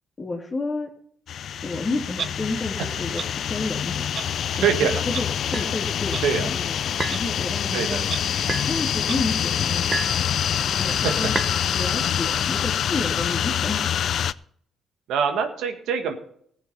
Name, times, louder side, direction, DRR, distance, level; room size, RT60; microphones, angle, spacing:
voice 1, 0.2-0.9 1.6-3.2 3.5-4.7 5.1-6.8 7.1-8.0 8.7-9.9 10.8-11.3 11.7-13.8, left 3 dB, 30° left, -4 dB, 2.4 m, -30 dB
sound 1, 1.3-14.3, left 9 dB, 65° left, 0.4 m, -26 dB
Clock, 2.2-2.3 3.2-3.3 4.1-4.3 5.1-5.2 6.1-6.2 7.1-7.2 8.1-8.2 9.1-9.2, right 7 dB, 55° right, 0.6 m, -31 dB
voice 2, 4.6-5.0 6.2-6.5 7.7-8.1 11.0-11.1 15.1-16.1, right 7 dB, 85° right, 6 dB, 1.7 m, -23 dB
sound 2, 5.5-5.7 7.0-7.3 8.5-8.7 9.9-10.2 11.3-11.6, right 3 dB, 20° right, 1.1 m, -28 dB
16.0 x 7.2 x 5.6 m, 0.64 s
cardioid pair, 90°, 0 cm